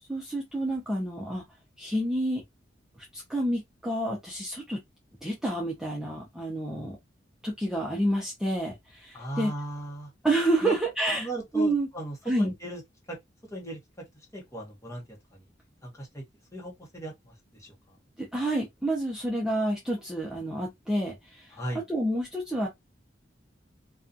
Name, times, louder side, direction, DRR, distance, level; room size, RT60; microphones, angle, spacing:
voice 1, 0.1-1.4 1.8-2.4 3.1-4.8 5.2-7.0 7.4-9.5 10.2-11.3 11.5-11.9 12.3-12.5 18.3-22.7, right 1 dB, 5° right, 0.5 m, -29 dB
voice 2, 9.1-10.1 10.6-10.8 11.2-12.8 13.1-13.2 13.5-13.8 14.3-15.0 15.8-16.2 16.5-17.7 21.5-21.8, right 1 dB, 15° left, 0.9 m, -37 dB
2.5 x 2.3 x 2.4 m
head